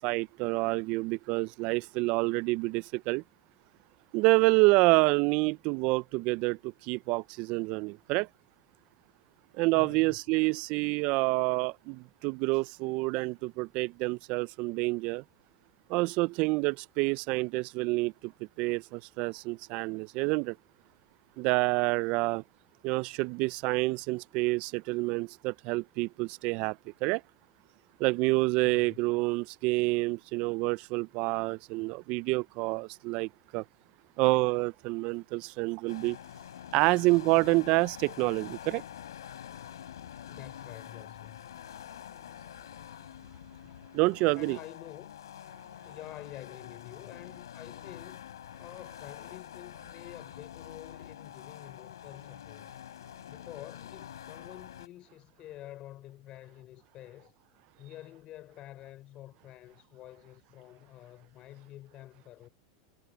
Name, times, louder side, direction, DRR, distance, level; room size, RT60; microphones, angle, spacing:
voice 1, 0.0-3.2 4.1-8.3 9.5-15.2 15.9-18.3 18.6-20.6 21.4-22.4 22.8-27.2 28.0-33.6 34.2-36.2 36.7-38.8 43.9-44.6, right 24 dB, 55° right, 0.7 m, -28 dB
voice 2, 9.6-10.2 28.6-29.0 40.3-41.5 44.3-45.1 45.8-48.2 48.6-52.7 53.3-57.4 57.8-62.5, left 14 dB, 45° left, 4.4 m, -48 dB
sound 1, 35.9-54.9, left 10 dB, 85° left, 7.7 m, -46 dB
hypercardioid pair, 100°, 2 cm